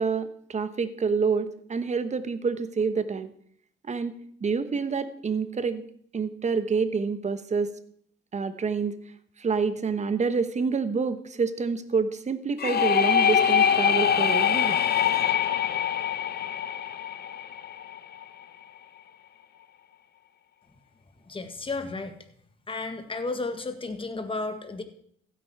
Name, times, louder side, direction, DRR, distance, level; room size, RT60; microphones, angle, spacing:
voice 1, 0.0-3.3 3.9-4.1 4.4-5.8 6.1-7.7 8.3-8.9 9.4-14.8, right 5 dB, 35° right, 12 dB, 1.1 m, -27 dB
sound 1, 12.6-18.2, left 8 dB, 55° left, 0.9 m, -24 dB
voice 2, 21.3-22.2 22.7-24.8, left 3 dB, 25° left, 8 dB, 1.6 m, -33 dB
15.0 x 8.5 x 4.6 m, 0.66 s
cardioid pair, 90°, 20 cm